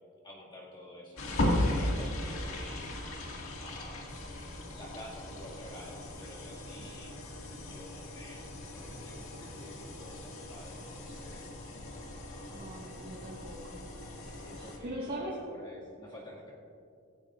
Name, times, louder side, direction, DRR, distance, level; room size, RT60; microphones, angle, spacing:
voice 1, 0.2-2.9 3.6-4.0 4.7-7.2 7.6-8.4 8.7-11.5 12.2-12.7 14.1-16.5, equal, 20° left, -6 dB, 2.1 m, -50 dB
sound 1, 1.2-14.8, left 1 dB, 65° left, 1.9 m, -37 dB
voice 2, 12.5-13.8 14.5-15.3, right 1 dB, 45° right, -6 dB, 1.7 m, -41 dB
17.5 x 16.0 x 2.5 m, 2.4 s
head